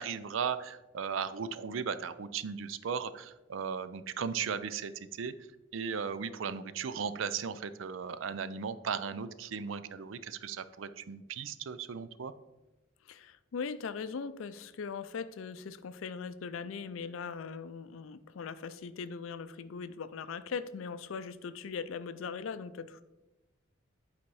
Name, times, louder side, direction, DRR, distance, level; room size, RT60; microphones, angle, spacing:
voice 1, 0.0-5.3 5.7-12.3, right 6 dB, 75° right, 14 dB, 0.4 m, -36 dB
voice 2, 13.0-23.0, left 5 dB, 85° left, 13 dB, 0.4 m, -40 dB
8.6 x 4.3 x 4.7 m, 1.0 s
head